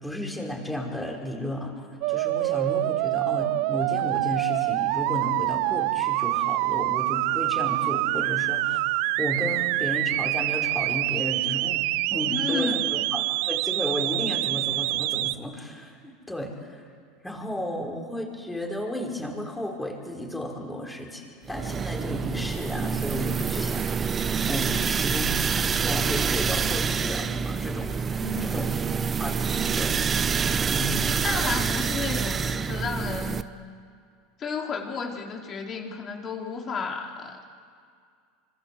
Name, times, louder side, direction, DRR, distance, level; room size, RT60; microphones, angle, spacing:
voice 1, 0.0-1.8 2.1-8.8 9.2-16.8 17.2-21.2 21.5-23.9 24.4-28.7 29.2-30.0 30.7-31.1, left 1 dB, 5° left, 0 dB, 5.3 m, -33 dB
sound 1, 2.0-15.3, right 19 dB, 65° right, 0.6 m, -26 dB
voice 2, 12.3-12.8 28.2-28.9 31.2-33.4 34.4-37.5, left 5 dB, 35° left, 1 dB, 4.0 m, -32 dB
sound 2, 21.5-33.4, right 6 dB, 25° right, 0.9 m, -27 dB
26.0 x 25.5 x 7.9 m, 2.2 s
supercardioid pair, 110°, 0 cm